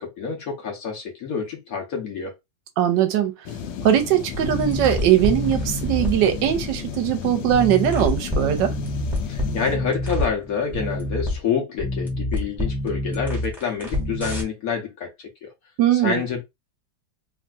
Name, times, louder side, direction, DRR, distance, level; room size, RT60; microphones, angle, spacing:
voice 1, 0.0-2.4 9.2-15.1 15.4-15.5 15.9-16.4, left 6 dB, 60° left, 1.1 m, -27 dB
voice 2, 2.8-3.3 3.8-8.7 15.8-16.2, right 11 dB, 80° right, 1.2 m, -20 dB
sound 1, 3.5-9.8, left 8 dB, 80° left, 1.2 m, -33 dB
sound 2, 4.3-7.0 7.5-11.4 11.8-14.4, left 1 dB, ahead, 1.1 m, -27 dB
3.2 x 2.6 x 2.2 m
omnidirectional pair, 2.0 m